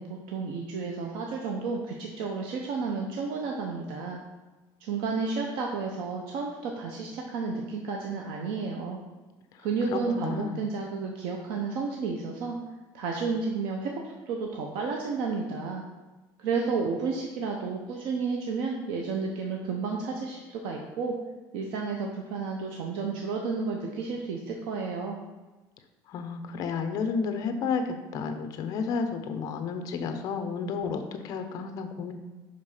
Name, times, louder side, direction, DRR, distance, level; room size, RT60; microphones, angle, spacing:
voice 1, 0.0-4.2 4.8-9.0 9.6-12.5 12.9-15.8 16.4-21.1 21.5-25.2, right 4 dB, 75° right, 1 dB, 0.8 m, -32 dB
voice 2, 9.6-10.6 26.1-32.1, left 5 dB, 45° left, 7 dB, 0.7 m, -32 dB
5.5 x 5.2 x 5.5 m, 1.2 s
cardioid pair, 180°, 9 cm